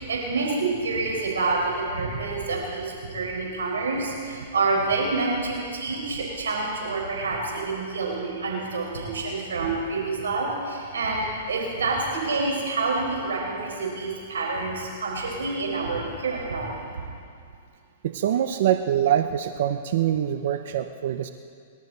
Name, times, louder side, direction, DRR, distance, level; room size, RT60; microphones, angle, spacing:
voice 1, 0.0-17.0, right 3 dB, 90° right, -2 dB, 4.7 m, -27 dB
voice 2, 18.0-21.3, right 10 dB, 65° right, 8 dB, 0.7 m, -24 dB
24.0 x 12.5 x 4.0 m, 2.3 s
hypercardioid pair, 130°, 0 cm